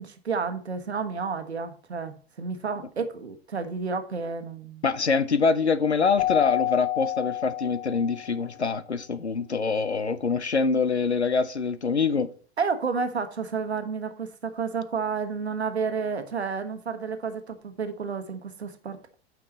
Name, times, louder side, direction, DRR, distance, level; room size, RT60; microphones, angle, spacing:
voice 1, 0.0-4.8 12.6-19.1, right 5 dB, 75° right, 1.2 m, -31 dB
voice 2, 4.8-12.3, left 5 dB, 85° left, 0.7 m, -25 dB
Keyboard (musical), 6.2-8.5, left 15 dB, 20° left, 0.3 m, -29 dB
9.0 x 5.8 x 4.1 m
figure-of-eight pair, 90°, 32 cm